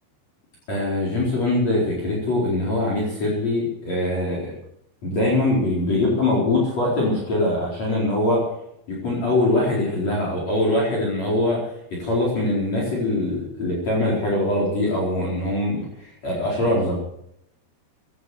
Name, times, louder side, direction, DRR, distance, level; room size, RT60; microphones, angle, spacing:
voice 1, 0.7-4.5 5.0-8.4 8.9-11.6 12.0-16.9, left 1 dB, 40° left, -4 dB, 5.4 m, -22 dB
17.0 x 12.0 x 6.4 m, 0.74 s
omnidirectional pair, 5.0 m